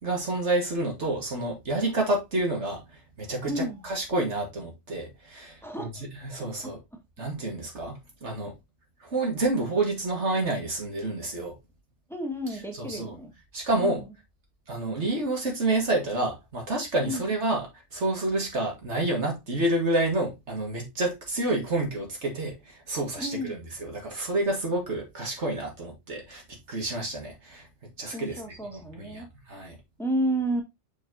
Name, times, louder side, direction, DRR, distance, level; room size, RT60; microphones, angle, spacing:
voice 1, 0.0-6.8 7.2-8.6 9.0-11.6 12.7-13.1 13.5-14.0 14.7-27.7 28.0-29.8, right 2 dB, 70° right, 2.2 m, -29 dB
voice 2, 3.4-3.8 5.6-5.8 12.1-13.3 13.8-14.0 17.0-17.2 23.2-23.6 28.1-29.3 30.0-30.6, right 1 dB, ahead, 1.7 m, -31 dB
6.2 x 5.7 x 2.8 m
omnidirectional pair, 1.2 m